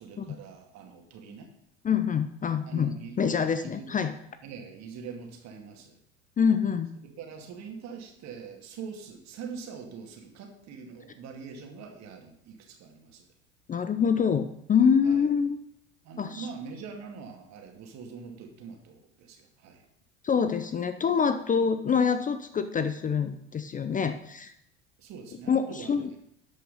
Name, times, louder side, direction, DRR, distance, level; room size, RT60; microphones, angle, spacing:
voice 1, 0.0-1.5 2.7-3.2 3.6-3.9 4.4-6.0 7.0-13.2 15.0-15.2 16.0-19.9 25.0-26.2, right 6 dB, 50° right, 3 dB, 2.4 m, -43 dB
voice 2, 1.8-4.1 6.4-6.9 13.7-15.6 16.2-16.5 20.2-24.5 25.5-26.2, left 6 dB, 25° left, 10 dB, 0.6 m, -26 dB
12.5 x 5.5 x 5.4 m, 0.75 s
hypercardioid pair, 80°, 35 cm